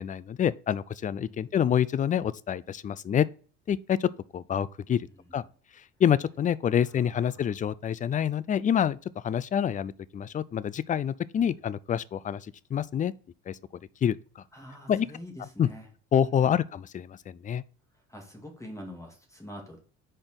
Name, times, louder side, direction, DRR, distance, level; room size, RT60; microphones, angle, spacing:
voice 1, 0.0-3.3 3.7-5.1 5.3-5.4 5.7-9.0 9.2-13.1 13.5-13.6 14.0-14.4 14.9-15.1 15.6-15.7 16.1-17.6, left 9 dB, 25° left, 0.3 m, -27 dB
voice 2, 6.8-7.5 14.5-15.9 16.2-16.6 17.9-19.8, left 1 dB, 10° left, 2.0 m, -45 dB
5.0 x 4.5 x 6.0 m
cardioid pair, 105°, 32 cm